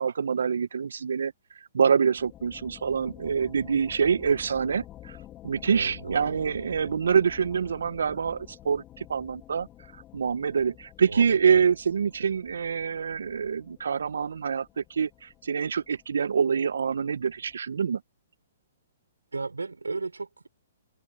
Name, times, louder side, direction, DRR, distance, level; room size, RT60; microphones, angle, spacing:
voice 1, 0.0-1.3 1.7-5.1 5.4-9.7 10.1-18.0, right 6 dB, 70° right, 0.8 m, -26 dB
sound 1, 2.2-17.6, left 13 dB, 25° left, 2.4 m, -50 dB
voice 2, 5.6-6.4 11.1-11.6 19.3-20.5, right 3 dB, 85° right, 4.2 m, -35 dB
open air
figure-of-eight pair, 125°, 0 cm